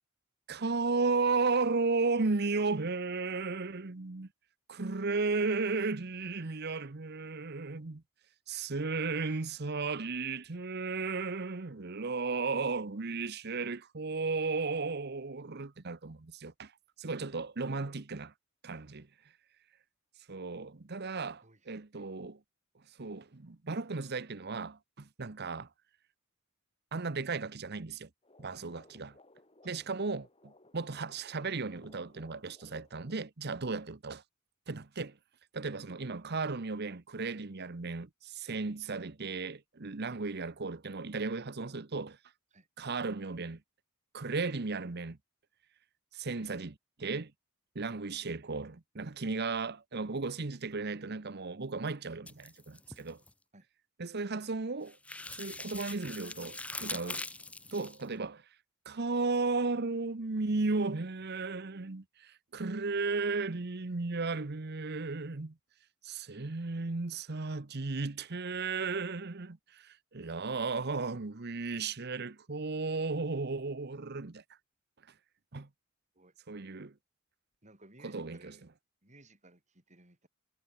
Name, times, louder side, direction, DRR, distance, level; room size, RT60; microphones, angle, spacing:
voice 1, 0.5-4.3 4.7-8.0 8.5-16.7 17.0-18.3 18.6-19.1 20.3-22.4 23.0-25.7 26.9-28.1 28.4-29.2 29.6-34.2 34.7-35.2 35.5-42.2 42.8-43.6 44.1-45.2 46.1-47.3 47.7-53.2 54.0-55.0 55.4-57.3 57.7-58.4 58.9-65.5 66.0-74.4 75.5-75.7 76.5-76.9 78.0-78.5, right 3 dB, 50° right, 1.0 m, -35 dB
sound 1, 28.2-33.3, left 2 dB, 25° left, 6.4 m, -61 dB
sound 2, 52.3-53.3 54.9-58.0, left 2 dB, 5° left, 0.6 m, -42 dB
voice 2, 77.6-78.6 79.0-80.3, right 2 dB, 35° right, 5.3 m, -59 dB
head